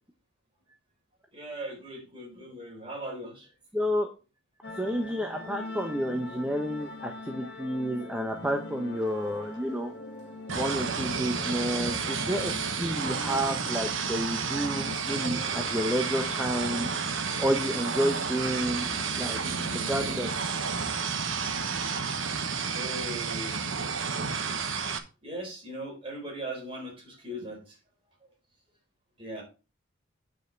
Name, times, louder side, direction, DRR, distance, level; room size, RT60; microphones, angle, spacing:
voice 1, 1.3-3.5 7.9-8.0 22.7-24.0 25.2-27.8 29.2-29.4, right 1 dB, 25° right, -1 dB, 4.1 m, -39 dB
voice 2, 3.7-4.1 4.8-9.9 10.6-16.9 17.4-18.8 19.2-19.4 19.7-20.3, equal, 5° right, 2 dB, 0.8 m, -30 dB
sound 1, 4.6-20.1, left 2 dB, 55° left, 1.4 m, -42 dB
sound 2, 10.5-25.0, right 5 dB, 80° right, 1.1 m, -31 dB
9.2 x 5.3 x 4.5 m, 0.31 s
head